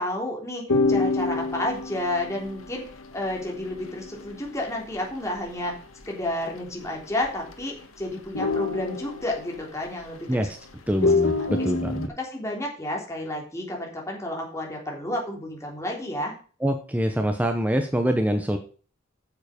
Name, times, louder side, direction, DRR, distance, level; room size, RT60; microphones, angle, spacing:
voice 1, 0.0-2.8 3.1-5.8 6.1-10.5 11.0-11.7 12.2-16.3, left 1 dB, 15° left, -1 dB, 3.3 m, -31 dB
sound 1, 0.7-5.7 6.0-6.1 6.4-6.8 7.2-7.8 8.2-10.5 10.9-12.1, left 3 dB, 80° left, 1.4 m, -27 dB
voice 2, 10.9-12.1 16.6-18.6, equal, 5° right, 5 dB, 0.8 m, -25 dB
9.4 x 7.3 x 5.2 m, 0.40 s
head